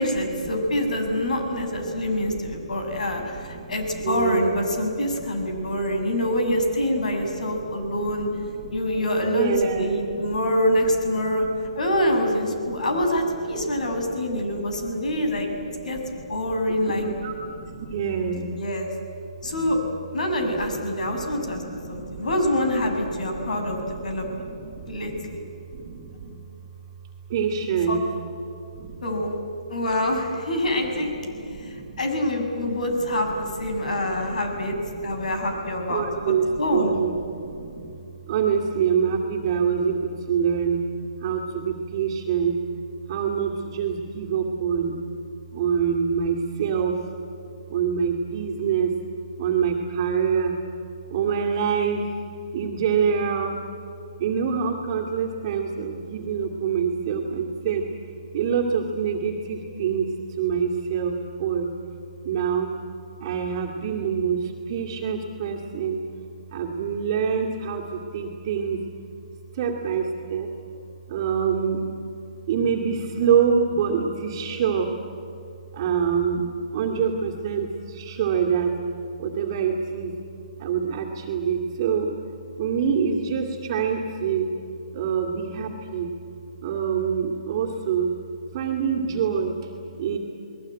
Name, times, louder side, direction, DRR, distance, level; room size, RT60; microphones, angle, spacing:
voice 1, 0.0-8.3 8.7-11.4 11.8-15.5 15.8-16.0 16.3-17.1 18.6-18.9 19.4-19.8 20.1-24.2 24.9-25.4 27.9-28.0 29.0-29.3 29.7-31.1 31.5-36.9, left 1 dB, 70° left, 4 dB, 6.6 m, -25 dB
voice 2, 0.6-6.1 7.1-10.5 11.2-11.4 12.6-12.9 13.5-18.6 19.4-19.9 20.4-25.4 25.7-26.3 27.3-28.0 28.8-29.0 30.6-32.1 32.9-37.9 38.3-40.8 41.2-42.5 43.1-45.0 45.5-47.1 47.7-48.9 49.4-50.6 51.1-52.1 52.5-53.6 54.2-57.9 58.3-61.7 62.2-62.7 63.2-66.0 66.5-68.8 69.5-70.5 71.1-71.9 72.5-74.9 75.7-76.5 76.7-78.7 79.2-80.1 80.6-82.1 82.6-84.5 84.9-86.1 86.6-88.1 88.5-89.7 90.0-90.2, right 7 dB, 35° right, -1 dB, 2.4 m, -27 dB
29.5 x 20.5 x 9.1 m, 2.8 s
hypercardioid pair, 160°, 4 cm